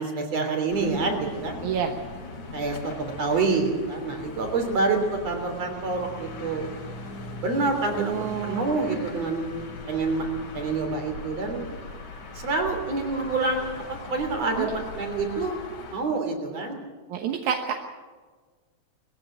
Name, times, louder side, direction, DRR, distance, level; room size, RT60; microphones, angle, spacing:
voice 1, 0.0-1.6 2.5-6.7 7.4-9.5 9.9-10.3 10.5-11.8 12.3-15.6 15.9-16.8, right 3 dB, 60° right, 4 dB, 4.4 m, -27 dB
sound 1, 0.7-15.9, left 3 dB, 85° left, 4.7 m, -40 dB
voice 2, 8.0-8.7 14.6-14.7 17.1-17.8, right 8 dB, 85° right, 3 dB, 2.6 m, -28 dB
21.0 x 15.5 x 9.0 m, 1.4 s
omnidirectional pair, 3.3 m